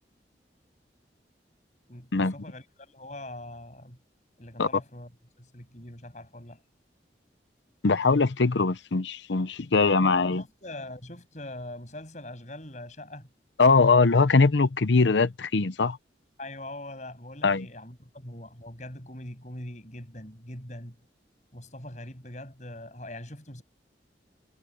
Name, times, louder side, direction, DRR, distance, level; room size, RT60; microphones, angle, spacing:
voice 1, 1.9-4.0 4.4-5.1 5.4-6.6 10.0-13.3 16.4-21.0 21.5-23.6, left 1 dB, 40° left, 7.1 m, -42 dB
voice 2, 7.8-10.4 13.6-16.0 17.4-17.7, left 4 dB, 90° left, 0.8 m, -21 dB
head